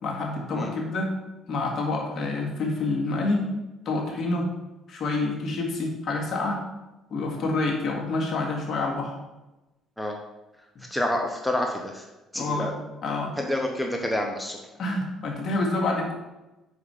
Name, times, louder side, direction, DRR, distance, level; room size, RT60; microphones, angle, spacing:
voice 1, 0.0-1.1 1.5-3.5 3.9-4.5 4.9-6.6 7.1-9.2 12.3-12.7 13.0-13.3 14.8-16.1, left 2 dB, 50° left, -1 dB, 1.8 m, -27 dB
voice 2, 10.9-12.0 12.3-12.8 13.4-14.6, left 1 dB, 5° left, 1 dB, 0.7 m, -28 dB
5.6 x 4.8 x 4.8 m, 1.0 s
cardioid pair, 105°, 0 cm